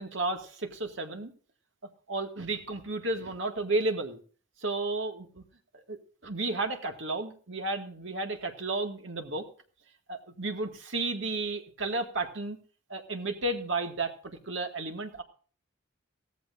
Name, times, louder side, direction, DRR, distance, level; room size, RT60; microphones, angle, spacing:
voice 1, 0.0-1.3 2.1-4.2 4.6-5.4 5.7-9.5 10.1-12.6 12.9-15.2, right 2 dB, 70° right, 5 dB, 2.0 m, -33 dB
16.5 x 14.5 x 2.6 m, 0.42 s
head